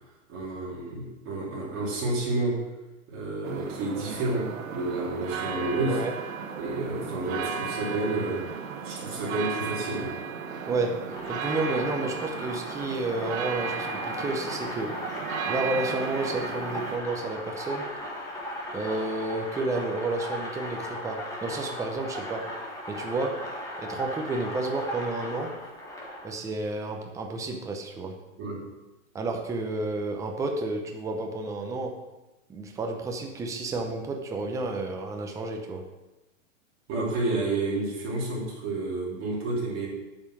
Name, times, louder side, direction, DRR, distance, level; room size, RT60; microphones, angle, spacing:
voice 1, 0.3-2.5 3.1-6.0 6.6-8.5 8.8-10.1 28.4-28.6 36.9-39.9, right 2 dB, 35° right, -5 dB, 3.4 m, -30 dB
sound 1, 3.4-17.0, right 6 dB, 85° right, 1.3 m, -35 dB
voice 2, 10.7-15.0 15.4-17.9 18.7-22.5 22.9-23.5 23.8-25.6 26.2-28.2 29.1-32.0 32.5-35.9, right 2 dB, 10° right, 3 dB, 0.7 m, -31 dB
sound 2, 11.1-26.3, equal, 10° left, 1.8 m, -37 dB
8.9 x 5.6 x 6.2 m, 1.0 s
hypercardioid pair, 145°, 39 cm